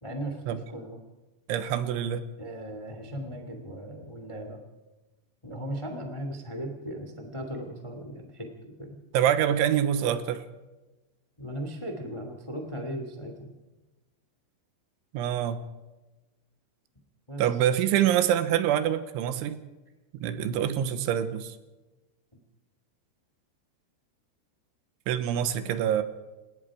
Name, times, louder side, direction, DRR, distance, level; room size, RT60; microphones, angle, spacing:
voice 1, 0.0-0.4 0.7-1.0 2.4-4.6 5.4-9.0 11.4-13.5 17.3-17.4, right 1 dB, 25° left, 4 dB, 0.6 m, -37 dB
voice 2, 1.5-2.3 9.1-10.5 15.1-15.6 17.4-19.6 20.1-21.6 25.1-26.0, right 10 dB, 85° right, 11 dB, 3.5 m, -25 dB
28.5 x 18.0 x 5.0 m, 1.1 s
omnidirectional pair, 5.4 m